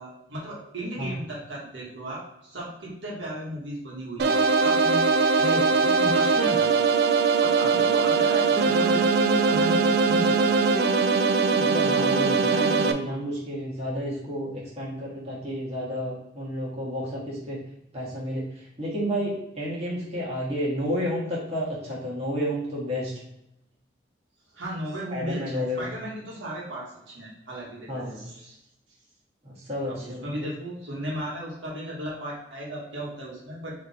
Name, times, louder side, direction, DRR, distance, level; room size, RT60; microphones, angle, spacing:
voice 1, 0.0-6.7 7.4-10.5 24.5-28.6 29.9-33.7, equal, 75° right, -5 dB, 1.5 m, -35 dB
sound 1, 4.2-12.9, right 4 dB, 55° right, 0.4 m, -21 dB
voice 2, 11.5-17.6 17.9-23.1 25.1-25.9 27.9-28.2 29.4-30.5, equal, 35° right, -7 dB, 1.6 m, -31 dB
3.8 x 3.3 x 4.2 m, 0.83 s
head